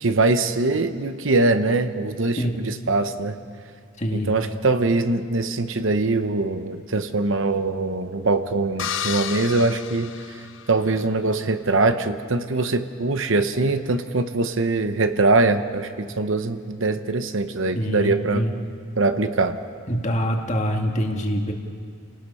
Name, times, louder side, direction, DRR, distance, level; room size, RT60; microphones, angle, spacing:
voice 1, 0.0-3.4 4.1-10.4 10.7-18.4 19.0-19.6, right 3 dB, 65° right, 9 dB, 1.0 m, -22 dB
voice 2, 4.0-4.4 17.7-18.5 19.9-21.5, equal, 35° left, 2 dB, 2.0 m, -25 dB
sound 1, 8.8-11.0, left 8 dB, 60° left, 0.8 m, -32 dB
30.0 x 18.5 x 5.6 m, 2.2 s
head